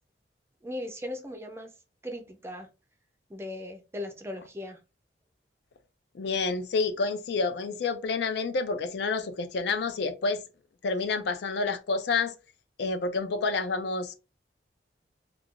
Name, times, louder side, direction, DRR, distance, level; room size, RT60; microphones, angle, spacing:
voice 1, 0.6-1.7 2.0-2.7 3.3-4.8, left 1 dB, 15° right, 0.4 m, -38 dB
voice 2, 6.1-10.4 10.8-12.3 12.8-14.2, left 4 dB, 65° left, 0.4 m, -29 dB
2.4 x 2.3 x 3.7 m
head